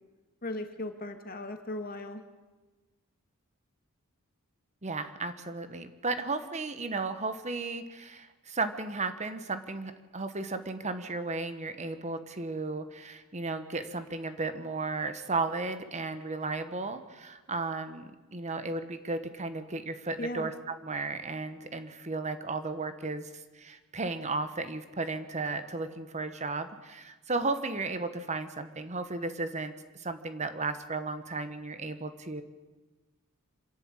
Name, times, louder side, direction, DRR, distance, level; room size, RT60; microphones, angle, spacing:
voice 1, 0.4-2.2 20.2-20.5, left 1 dB, 45° left, 6 dB, 1.9 m, -37 dB
voice 2, 4.8-23.3 23.5-32.4, right 3 dB, 30° right, 10 dB, 1.2 m, -34 dB
26.0 x 11.5 x 8.8 m, 1.2 s
head